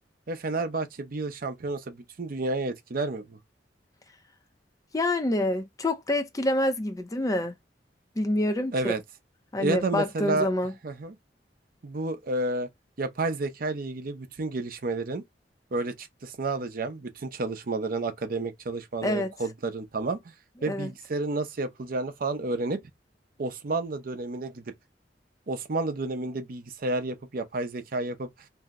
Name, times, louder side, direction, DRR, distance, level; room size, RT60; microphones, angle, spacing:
voice 1, 0.3-3.4 8.7-9.0 9.6-10.5 10.8-11.2 11.8-12.7 13.0-15.2 15.7-20.2 20.6-22.8 23.4-24.6 25.5-28.3, right 2 dB, 55° right, 0.6 m, -30 dB
voice 2, 4.9-7.5 8.2-9.0 9.5-10.7 19.0-19.3 20.6-20.9, left 1 dB, 20° left, 0.5 m, -27 dB
2.7 x 2.0 x 3.5 m
head